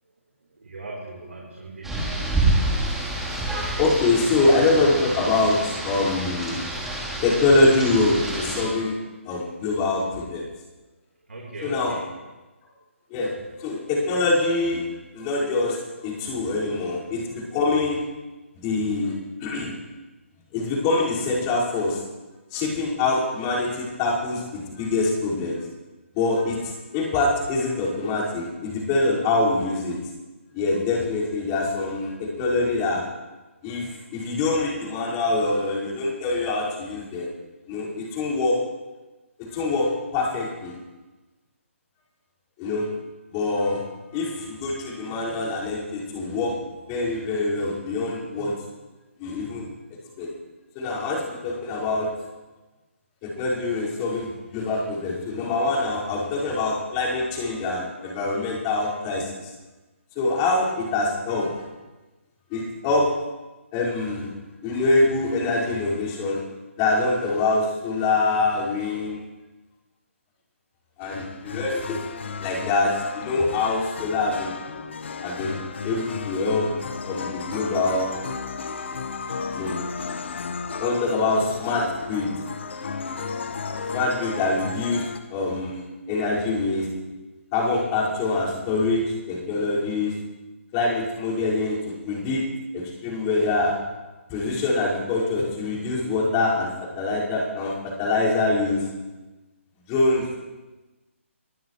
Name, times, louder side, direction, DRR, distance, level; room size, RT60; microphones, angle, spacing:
voice 1, 0.6-2.1 4.2-4.5 11.3-12.0, right 2 dB, 75° right, -3 dB, 4.1 m, -39 dB
Rain, 1.8-8.6, right 2 dB, 5° right, 3.9 m, -27 dB
voice 2, 3.8-6.6 7.2-9.0 9.2-10.4 11.6-12.0 13.1-13.3 13.6-14.8 15.1-18.0 18.6-19.1 19.4-19.7 20.5-22.0 22.5-25.6 26.1-30.0 30.5-33.0 33.6-37.3 37.7-38.6 39.4-40.7 42.6-42.9 43.3-43.8 44.1-46.6 46.9-48.5 49.2-49.7 50.2-50.3 50.7-52.1 53.2-59.5 60.2-61.6 62.5-63.1 63.7-64.3 64.6-66.4 66.8-69.2 71.0-72.0 72.4-74.6 75.2-76.7 77.0-78.1 79.5-79.8 80.8-82.3 83.9-85.0 85.3-86.9 87.5-90.1 90.7-92.4 92.7-93.7 94.3-98.8 99.9-100.3, left 3 dB, 25° left, -6 dB, 5.6 m, -24 dB
sound 1, 71.0-85.2, left 5 dB, 55° left, 1.3 m, -34 dB
24.0 x 15.5 x 3.3 m, 1.1 s
figure-of-eight pair, 140°, 7 cm